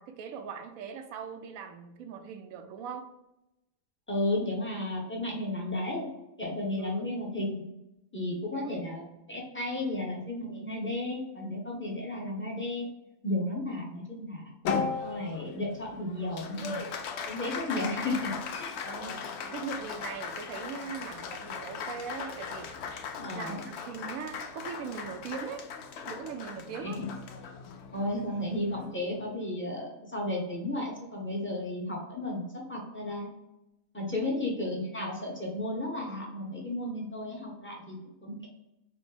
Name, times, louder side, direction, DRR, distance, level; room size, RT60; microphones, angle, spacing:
voice 1, 0.0-3.1 6.8-7.1 8.5-8.9 9.8-9.9 18.8-22.8 23.3-25.6 26.1-27.0 34.1-34.3, right 6 dB, 80° right, 1.0 m, -40 dB
voice 2, 4.1-6.1 6.4-7.7 8.1-9.0 9.3-12.9 13.2-14.6 15.0-16.9 17.3-18.3 18.6-18.8 23.1-23.7 26.8-27.1 27.9-33.3 33.9-38.5, left 1 dB, 10° left, 0.7 m, -33 dB
Applause, 14.6-29.3, left 5 dB, 65° left, 0.7 m, -38 dB
5.0 x 2.1 x 3.2 m
omnidirectional pair, 1.5 m